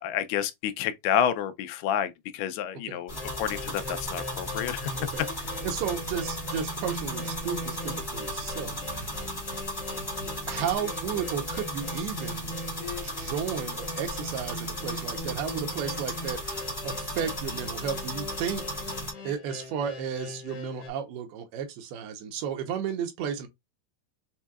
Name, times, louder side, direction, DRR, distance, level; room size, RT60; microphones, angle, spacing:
voice 1, 0.0-4.9 5.4-5.5, left 9 dB, 85° left, 2.5 m, -29 dB
sound 1, 3.1-19.1, equal, 65° left, 0.4 m, -36 dB
sound 2, 3.1-20.9, left 1 dB, 45° left, 1.8 m, -40 dB
voice 2, 5.6-9.1 10.5-12.5 12.9-18.6 19.2-23.5, right 8 dB, 85° right, 2.8 m, -33 dB
7.0 x 2.7 x 2.3 m
omnidirectional pair, 4.5 m